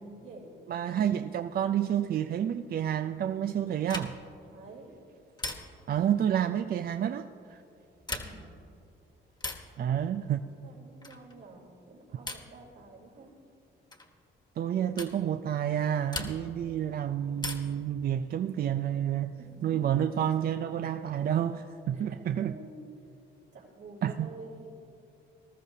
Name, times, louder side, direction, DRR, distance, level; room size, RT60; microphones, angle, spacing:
voice 1, 0.2-0.5 4.5-4.9 8.1-8.5 9.9-13.3 19.4-20.2 21.9-22.9 23.5-24.8, right 2 dB, 80° right, 3.7 m, -49 dB
voice 2, 0.7-4.1 5.9-7.6 9.8-10.4 14.6-19.3 19.6-22.5 24.0-24.3, right 10 dB, 50° right, 0.4 m, -29 dB
sound 1, 3.9-4.4 5.4-6.0 7.9-8.6 9.4-9.8 11.0-11.4 12.3-12.6 13.9-14.1 15.0-15.2 16.1-16.7 17.4-17.9 19.3-20.0, left 2 dB, 20° left, 1.4 m, -39 dB
19.5 x 13.5 x 2.8 m
cardioid pair, 90°, 20 cm